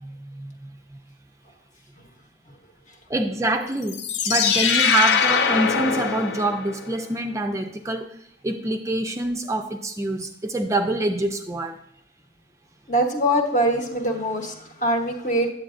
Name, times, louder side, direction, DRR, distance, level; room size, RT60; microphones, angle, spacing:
voice 1, 0.0-0.7 3.1-8.1 8.4-11.8, right 2 dB, 15° right, 5 dB, 0.4 m, -26 dB
sound 1, 3.8-7.0, left 6 dB, 65° left, 0.5 m, -22 dB
voice 2, 12.9-15.5, right 1 dB, 45° left, 3 dB, 1.0 m, -23 dB
9.2 x 7.7 x 2.5 m, 0.73 s
head